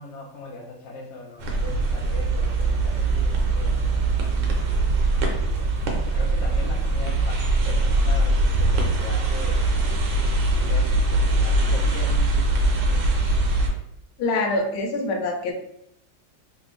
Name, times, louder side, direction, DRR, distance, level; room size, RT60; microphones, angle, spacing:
voice 1, 0.0-4.1 4.5-5.1 5.5-5.7 6.1-12.2 12.5-13.1, left 3 dB, 60° left, -2 dB, 0.7 m, -40 dB
sound 1, 1.4-13.7, right 2 dB, 70° right, 1.2 m, -22 dB
voice 2, 14.2-15.5, left 2 dB, 90° left, 3 dB, 1.5 m, -25 dB
3.4 x 2.6 x 3.2 m, 0.76 s
omnidirectional pair, 2.2 m